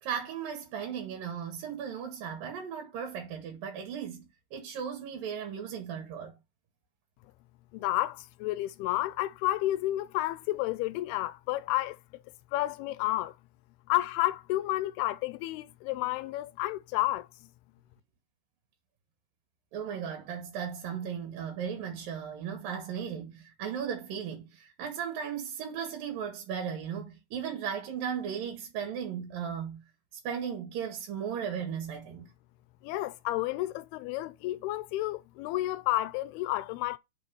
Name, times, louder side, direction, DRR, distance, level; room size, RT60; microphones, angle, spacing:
voice 1, 0.0-6.3 19.7-29.8 30.2-32.3, right 8 dB, 65° right, 3.3 m, -36 dB
voice 2, 7.7-12.0 12.5-13.3 13.9-17.3 32.8-37.0, left 16 dB, 85° left, 2.5 m, -31 dB
6.5 x 5.3 x 5.4 m
omnidirectional pair, 4.5 m